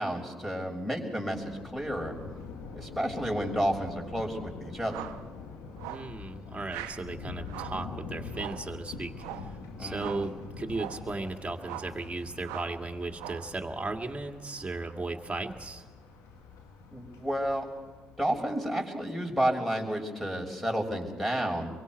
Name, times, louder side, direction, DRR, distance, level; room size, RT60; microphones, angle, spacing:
voice 1, 0.0-2.1 2.8-5.1 9.8-10.3 16.9-17.7 18.2-21.7, right 1 dB, ahead, 0 dB, 5.9 m, -31 dB
Thunder, 1.1-18.5, left 5 dB, 75° left, 2.3 m, -45 dB
sound 1, 4.9-5.2 5.8-6.1 6.7-7.0 7.5-7.8 8.3-8.7 9.2-9.5 9.9-10.3 10.7-11.1 11.6-12.0 12.4-12.8 13.1-13.5, right 13 dB, 80° right, 0.8 m, -41 dB
voice 2, 5.9-9.4 9.8-15.9, right 3 dB, 20° right, 3 dB, 2.4 m, -36 dB
25.5 x 23.5 x 4.7 m, 1.3 s
hypercardioid pair, 45°, 6 cm